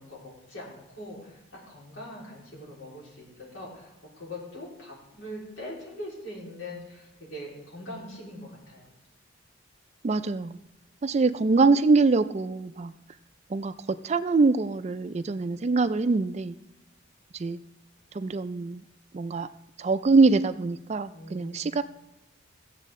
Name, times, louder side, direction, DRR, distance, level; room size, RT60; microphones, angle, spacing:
voice 1, 0.0-8.9 21.1-21.8, left 1 dB, 85° left, -4 dB, 3.9 m, -42 dB
voice 2, 10.0-10.6 11.0-12.9 13.5-16.6 17.3-17.6 18.1-18.8 19.1-19.5 19.8-21.8, right 3 dB, 35° right, 12 dB, 0.4 m, -24 dB
15.5 x 7.5 x 3.7 m, 0.96 s
head